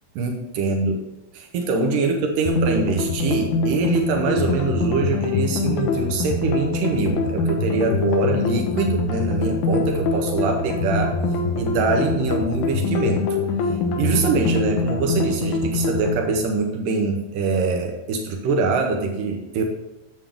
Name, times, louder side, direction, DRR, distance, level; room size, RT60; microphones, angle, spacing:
voice 1, 0.2-1.0 1.3-11.1 11.5-13.4 13.7-19.6, right 3 dB, 80° right, 2 dB, 2.5 m, -24 dB
sound 1, 2.5-16.2, left 3 dB, 70° left, 2.2 m, -23 dB
9.3 x 7.3 x 3.6 m, 0.96 s
omnidirectional pair, 3.9 m